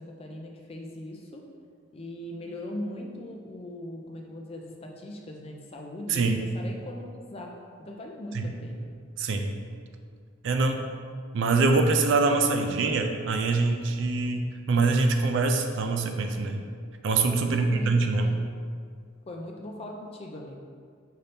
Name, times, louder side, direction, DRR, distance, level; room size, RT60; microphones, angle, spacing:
voice 1, 0.0-1.5 1.9-8.9 17.4-17.9 18.2-18.4 19.3-20.6, left 1 dB, 30° left, 1 dB, 0.4 m, -40 dB
voice 2, 6.1-6.4 8.3-8.5 9.2-9.5 10.4-10.8 11.3-16.6 17.0-18.4, right 3 dB, 60° right, 5 dB, 0.4 m, -24 dB
5.5 x 2.7 x 3.4 m, 2.1 s
head